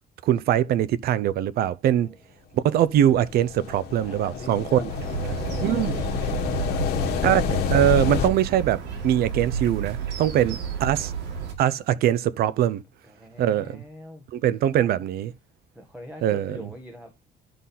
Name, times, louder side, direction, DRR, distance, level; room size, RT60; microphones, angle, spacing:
voice 1, 0.2-2.1 2.6-4.8 5.6-5.9 7.2-11.1 11.6-12.8 13.4-13.8 14.3-15.3 16.2-16.6, right 11 dB, 65° right, 0.6 m, -22 dB
sound 1, 3.0-8.3, left 7 dB, 70° left, 1.3 m, -28 dB
voice 2, 4.0-7.3 10.3-11.1 11.7-11.9 13.0-14.2 14.7-14.9 15.7-17.1, equal, 5° right, 1.5 m, -43 dB
sound 2, 4.9-11.5, right 7 dB, 85° right, 1.8 m, -32 dB
11.0 x 3.9 x 4.2 m
cardioid pair, 110°, 17 cm